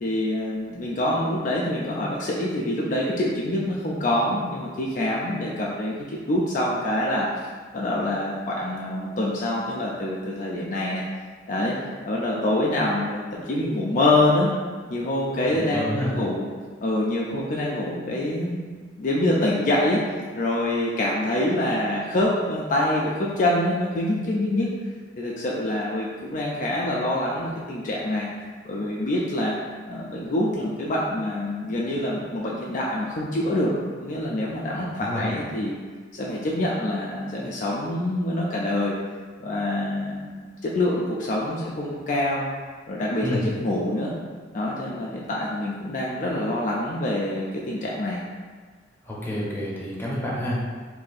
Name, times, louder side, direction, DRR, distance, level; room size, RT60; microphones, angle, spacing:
voice 1, 0.0-7.3 7.7-11.0 11.5-11.8 12.0-14.5 14.9-16.5 16.8-18.6 19.0-20.0 20.4-24.7 25.2-28.3 28.6-29.5 29.9-33.7 34.0-35.7 36.1-38.9 39.4-40.3 40.6-42.5 42.9-44.1 44.5-48.2, left 1 dB, 45° left, -4 dB, 0.4 m, -25 dB
voice 2, 15.5-16.1 34.7-35.3 43.2-43.5 49.0-50.6, equal, 10° left, -7 dB, 0.7 m, -29 dB
2.6 x 2.6 x 4.0 m, 1.5 s
head